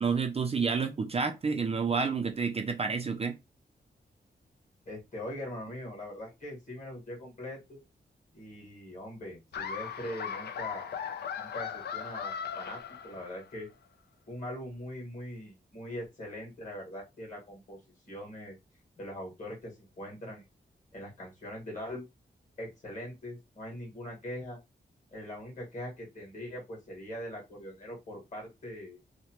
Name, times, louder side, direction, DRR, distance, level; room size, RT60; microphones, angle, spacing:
voice 1, 0.0-3.3, right 5 dB, 35° right, 0.4 m, -29 dB
voice 2, 4.8-7.8 8.3-10.9 11.4-13.7 14.3-17.8 18.1-18.6 19.0-20.4 20.9-22.1 22.6-24.6 25.1-29.0, left 1 dB, 45° left, 1.6 m, -42 dB
Laughter, 9.5-13.6, left 7 dB, 60° left, 0.4 m, -38 dB
2.9 x 2.2 x 2.9 m
wide cardioid pair, 135°, 19 cm